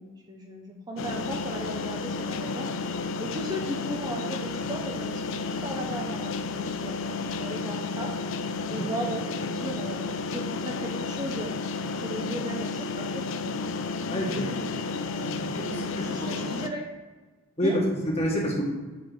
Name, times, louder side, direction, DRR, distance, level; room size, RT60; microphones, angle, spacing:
voice 1, 0.0-2.7 3.2-8.1 8.7-11.5 12.0-13.6 14.2-16.9 17.6-17.8, right 1 dB, 20° right, 1 dB, 0.6 m, -37 dB
sound 1, 1.0-16.7, left 4 dB, 65° left, 0.5 m, -32 dB
voice 2, 14.1-14.8 15.2-16.5 17.6-18.6, equal, 30° left, -3 dB, 1.6 m, -29 dB
8.3 x 3.7 x 4.9 m, 1.3 s
head